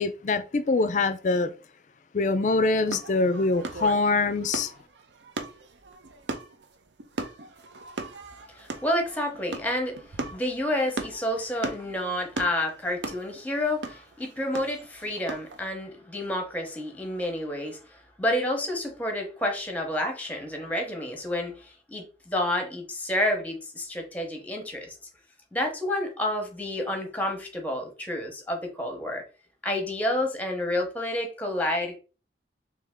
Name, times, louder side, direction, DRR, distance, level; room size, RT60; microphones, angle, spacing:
voice 1, 0.0-1.5 2.1-4.7, left 3 dB, 40° left, 0.4 m, -24 dB
sound 1, 2.9-15.6, right 3 dB, 80° right, 0.6 m, -38 dB
voice 2, 8.5-25.0 25.5-29.2 29.6-32.0, left 1 dB, 10° left, 0.8 m, -29 dB
3.4 x 2.8 x 3.5 m
head